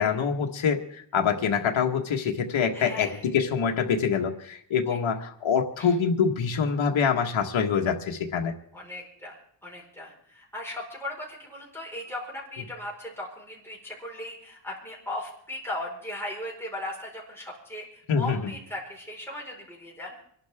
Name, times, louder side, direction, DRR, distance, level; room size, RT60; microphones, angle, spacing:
voice 1, 0.0-8.5 18.1-18.4, left 6 dB, 75° left, 1 dB, 1.6 m, -25 dB
voice 2, 2.7-3.2 4.9-5.0 5.8-5.9 8.7-20.2, left 1 dB, 5° left, -3 dB, 4.8 m, -38 dB
25.5 x 11.5 x 3.6 m, 0.67 s
wide cardioid pair, 140°, 47 cm